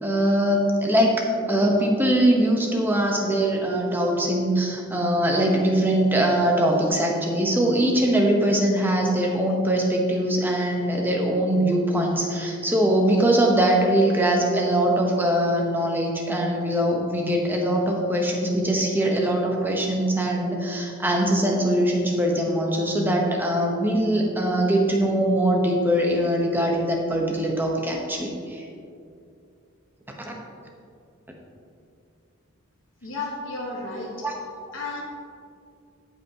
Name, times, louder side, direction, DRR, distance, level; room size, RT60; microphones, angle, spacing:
voice 1, 0.0-28.6 30.2-30.3 34.2-34.3, right 1 dB, 10° right, 0 dB, 0.9 m, -22 dB
voice 2, 33.0-34.2 34.7-35.0, left 3 dB, 65° left, -3 dB, 1.2 m, -32 dB
14.0 x 5.5 x 2.8 m, 2.5 s
head